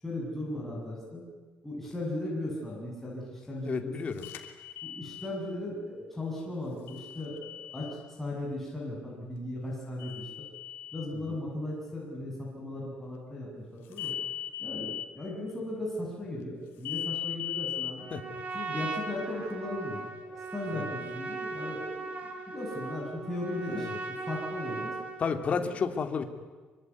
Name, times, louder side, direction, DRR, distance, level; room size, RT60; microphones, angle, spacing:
voice 1, 0.0-1.2 1.6-4.1 4.8-10.3 10.9-14.2 14.6-18.1 18.5-25.0 25.5-25.7, left 1 dB, 5° left, -4 dB, 7.0 m, -37 dB
voice 2, 3.6-4.3 11.1-11.4 18.1-18.4 20.7-20.8 23.7-24.0 25.2-26.2, left 5 dB, 35° left, 7 dB, 2.5 m, -32 dB
sound 1, 4.2-5.3 6.9-8.0 10.0-11.1 13.9-15.1 16.8-17.9, left 11 dB, 80° left, 3.0 m, -38 dB
Trumpet, 18.0-25.3, right 3 dB, 45° right, 4.6 m, -38 dB
24.5 x 24.5 x 9.6 m, 1.3 s
cardioid pair, 135°, 4 cm